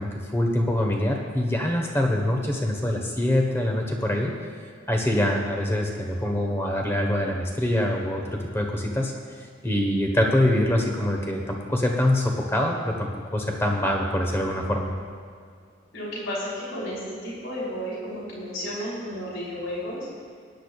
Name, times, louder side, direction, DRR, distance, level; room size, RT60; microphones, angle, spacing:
voice 1, 0.0-4.3 4.9-9.1 9.6-14.9, left 1 dB, 15° left, 1 dB, 1.2 m, -24 dB
voice 2, 15.9-20.1, equal, 85° left, -6 dB, 3.3 m, -32 dB
19.0 x 10.0 x 2.4 m, 2.1 s
head